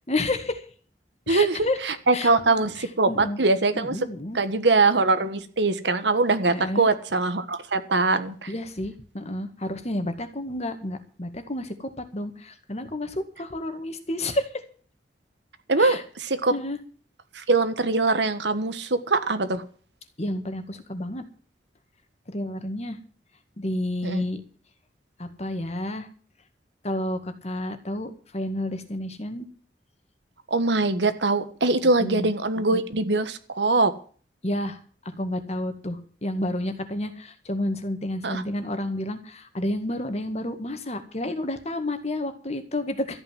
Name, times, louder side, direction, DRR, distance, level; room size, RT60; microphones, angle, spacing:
voice 1, 0.1-0.6 1.3-1.8 2.1-2.7 3.1-3.4 3.8-4.4 6.5-6.9 8.5-14.5 15.8-16.0 16.5-16.8 20.2-21.2 22.3-23.0 23.6-24.4 25.2-26.1 26.8-29.5 32.0-32.3 34.4-34.8 35.1-43.2, left 1 dB, 35° left, 8 dB, 1.9 m, -30 dB
voice 2, 1.3-1.6 1.8-4.0 4.3-8.5 15.7-16.5 17.3-19.6 24.0-24.3 30.5-33.9 38.2-38.4, right 3 dB, 75° right, 11 dB, 1.5 m, -22 dB
13.5 x 9.0 x 7.5 m, 0.43 s
head